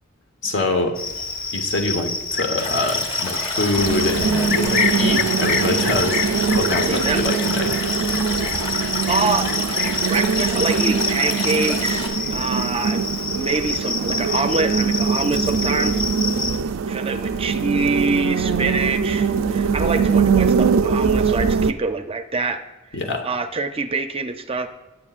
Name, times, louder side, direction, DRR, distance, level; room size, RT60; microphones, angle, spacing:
voice 1, 0.4-1.0 1.5-7.8 22.9-23.3, left 2 dB, 65° left, 4 dB, 1.2 m, -24 dB
Cricket, 1.0-16.6, left 4 dB, 45° left, 0.8 m, -27 dB
Stream, 2.6-12.1, left 2 dB, 30° left, 1.4 m, -30 dB
sound 1, 3.8-21.7, right 6 dB, 90° right, 0.4 m, -22 dB
voice 2, 6.9-7.2 8.6-13.0 13.3-16.0 16.9-22.6 23.2-24.7, right 3 dB, 30° right, 8 dB, 0.5 m, -25 dB
18.5 x 9.0 x 2.5 m, 1.1 s
head